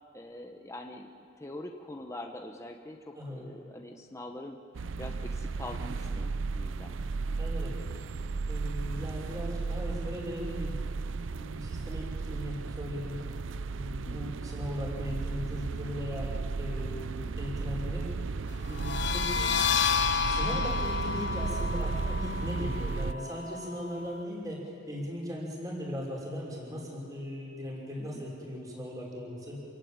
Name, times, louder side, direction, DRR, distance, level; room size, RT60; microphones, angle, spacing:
voice 1, 0.1-1.1 1.4-4.6 5.0-7.0 14.1-14.3 28.0-28.2, left 1 dB, 15° left, 3 dB, 1.1 m, -43 dB
voice 2, 3.1-3.4 7.4-7.8 8.5-10.7 11.3-13.2 13.7-16.3 16.6-18.1 18.7-19.5 20.3-24.6 24.9-29.6, equal, 20° right, -3 dB, 5.8 m, -38 dB
sound 1, 4.7-23.1, right 4 dB, 85° right, 0.5 m, -34 dB
sound 2, 18.7-24.2, left 6 dB, 65° left, 1.2 m, -31 dB
27.5 x 16.5 x 9.0 m, 2.4 s
head